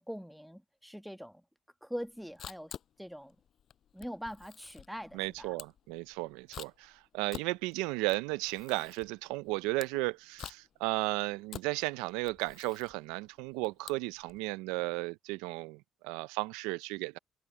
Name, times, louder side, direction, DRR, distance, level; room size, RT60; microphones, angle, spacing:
voice 1, 0.0-1.4 1.8-3.3 3.9-5.5, equal, ahead, 1.6 m, -43 dB
Camera, 2.0-14.4, left 9 dB, 60° left, 6.4 m, -49 dB
voice 2, 5.1-17.2, right 22 dB, 90° right, 0.4 m, -34 dB
supercardioid pair, 60°, 0 cm